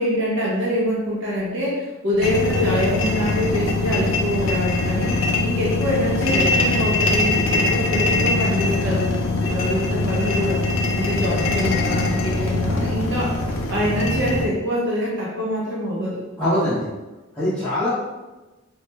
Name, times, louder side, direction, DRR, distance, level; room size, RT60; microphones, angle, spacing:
voice 1, 0.0-10.6 11.0-13.4 13.7-16.2, equal, 60° right, -5 dB, 0.6 m, -25 dB
sound 1, 2.2-14.5, left 2 dB, 70° left, 0.4 m, -22 dB
voice 2, 16.4-16.9 17.3-17.9, left 1 dB, 5° left, -14 dB, 0.7 m, -22 dB
2.9 x 2.2 x 3.2 m, 1.1 s
head